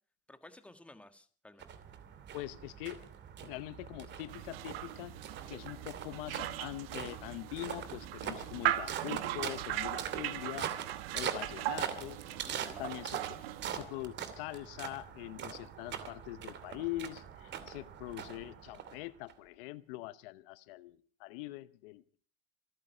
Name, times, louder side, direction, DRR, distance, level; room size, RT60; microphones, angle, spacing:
voice 1, 0.3-1.7 12.3-12.9, left 1 dB, 5° left, 1.5 m, -55 dB
sound 1, 1.6-19.3, right 8 dB, 40° right, 2.6 m, -43 dB
voice 2, 2.3-3.0 3.4-5.2 5.5-10.7 11.1-12.2 12.8-13.4 13.7-22.0, left 17 dB, 75° left, 1.0 m, -43 dB
sound 2, 4.3-13.7, right 14 dB, 90° right, 1.4 m, -39 dB
27.0 x 9.4 x 5.5 m
supercardioid pair, 130°, 29 cm